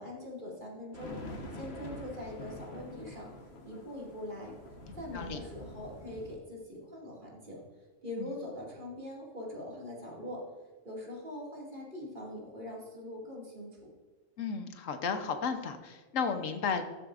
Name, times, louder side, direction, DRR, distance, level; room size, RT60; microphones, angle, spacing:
voice 1, 0.0-3.3 3.6-4.5 4.9-7.6 8.0-10.5 10.8-13.9, left 1 dB, 40° right, -2 dB, 2.5 m, -42 dB
sound 1, 0.9-6.4, left 1 dB, 55° left, 1.4 m, -46 dB
voice 2, 14.4-16.8, left 6 dB, 80° left, 8 dB, 1.2 m, -33 dB
13.0 x 7.6 x 2.5 m, 1.3 s
omnidirectional pair, 1.3 m